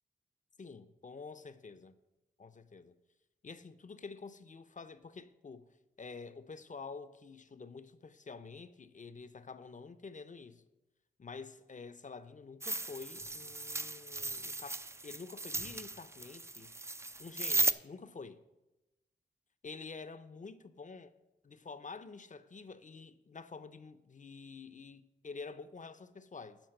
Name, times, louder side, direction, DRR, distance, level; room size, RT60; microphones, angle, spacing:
voice 1, 0.6-2.0 2.4-3.0 3.4-5.7 6.0-10.6 11.2-16.7 17.2-18.4 19.6-21.1 21.4-26.6, left 4 dB, 40° left, 0.6 m, -48 dB
sound 1, 12.6-17.7, right 2 dB, 15° right, 0.4 m, -36 dB
10.5 x 4.2 x 6.5 m
cardioid pair, 50°, 19 cm